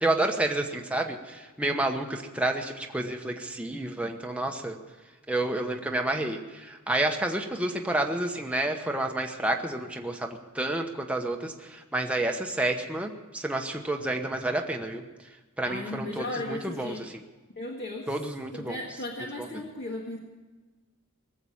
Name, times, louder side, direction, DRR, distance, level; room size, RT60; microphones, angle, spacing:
voice 1, 0.0-4.8 5.3-15.0 15.6-17.0 18.1-18.8 19.4-19.5, right 1 dB, 5° right, 2 dB, 1.0 m, -30 dB
voice 2, 15.7-17.1 17.6-18.1 18.5-20.2, left 1 dB, 50° left, -1 dB, 1.7 m, -36 dB
19.5 x 7.8 x 8.6 m, 1.3 s
head